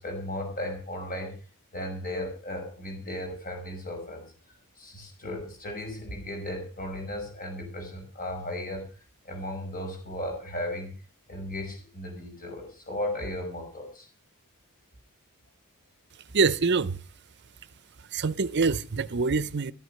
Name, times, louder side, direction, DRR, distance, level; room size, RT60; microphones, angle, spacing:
voice 1, 0.0-1.3 1.7-4.3 4.8-8.9 9.2-10.9 11.3-14.1, left 1 dB, 40° left, 5.8 m, -35 dB
voice 2, 16.3-17.0 18.0-19.7, right 4 dB, 50° right, 0.7 m, -25 dB
13.5 x 11.0 x 6.5 m
head